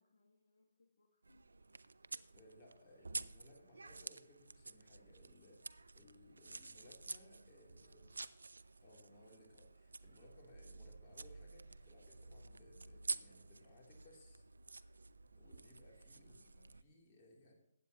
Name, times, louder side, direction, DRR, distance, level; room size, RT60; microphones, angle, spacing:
voice 1, 0.0-1.6 7.5-8.3 11.8-12.0 16.2-16.8, left 3 dB, 65° left, 1 dB, 1.8 m, -74 dB
sound 1, 1.2-16.8, right 3 dB, 85° right, 0.5 m, -50 dB
voice 2, 2.3-5.6 5.9-8.0 8.8-14.4 15.3-17.5, left 1 dB, 30° left, -2 dB, 3.2 m, -63 dB
15.5 x 9.3 x 3.0 m, 0.85 s
figure-of-eight pair, 145°, 0 cm